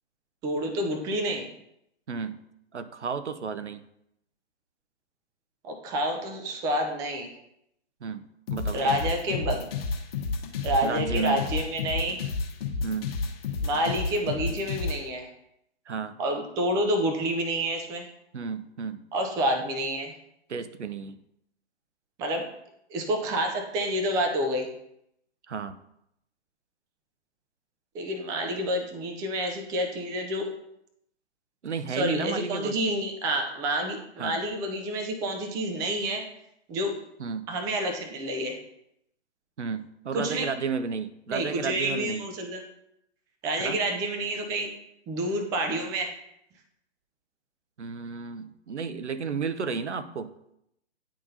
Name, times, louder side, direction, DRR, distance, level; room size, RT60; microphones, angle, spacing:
voice 1, 0.4-1.5 5.6-7.3 8.7-9.6 10.6-12.2 13.6-15.3 16.2-18.1 19.1-20.1 22.2-22.5 22.9-24.7 27.9-30.5 31.9-36.3 36.7-36.9 37.5-38.6 40.1-40.5 41.3-42.6 43.4-44.7 45.1-46.1, right 1 dB, 10° right, 4 dB, 0.4 m, -28 dB
voice 2, 2.1-2.4 2.7-3.8 8.0-9.0 10.8-11.4 12.8-13.1 15.9-16.2 18.3-19.0 20.5-21.2 25.5-25.8 31.6-32.8 34.2-34.4 37.2-37.5 39.6-42.3 43.6-43.8 47.8-50.3, right 5 dB, 90° right, 12 dB, 0.6 m, -33 dB
sound 1, 8.5-15.0, left 4 dB, 60° left, 1.2 m, -30 dB
10.0 x 3.7 x 2.6 m, 0.78 s
figure-of-eight pair, 125°, 34 cm